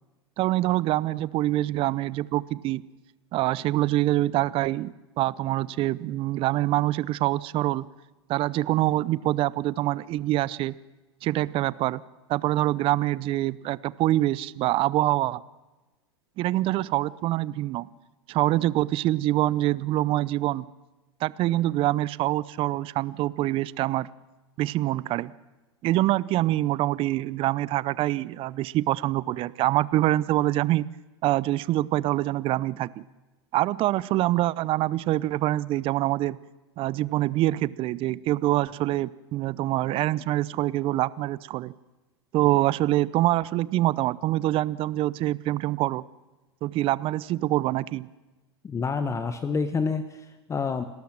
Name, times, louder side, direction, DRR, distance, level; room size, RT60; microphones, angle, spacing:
voice 1, 0.4-2.8 3.3-7.9 8.3-10.7 11.2-12.0 12.3-15.4 16.4-17.9 18.3-20.7 21.2-24.1 24.6-25.3 25.8-30.8 31.2-33.0 33.5-36.4 36.8-41.7 42.3-46.0 46.6-48.1, right 16 dB, 40° right, 20 dB, 0.6 m, -25 dB
voice 2, 48.6-50.8, left 5 dB, 20° left, 9 dB, 1.1 m, -28 dB
28.5 x 13.0 x 7.5 m, 1.1 s
hypercardioid pair, 100°, 15 cm